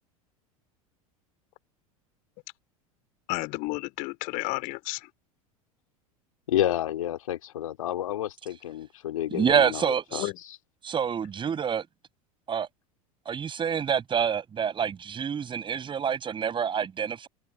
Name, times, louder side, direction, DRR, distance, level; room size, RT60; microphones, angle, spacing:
voice 1, 3.3-5.1 10.1-10.3, left 25 dB, 50° left, 4.2 m, -32 dB
voice 2, 6.5-10.2, left 12 dB, 70° left, 3.4 m, -30 dB
voice 3, 9.3-10.2 10.8-11.9 12.5-12.7 13.3-17.3, right 7 dB, 25° right, 5.9 m, -27 dB
figure-of-eight pair, 80°, 18 cm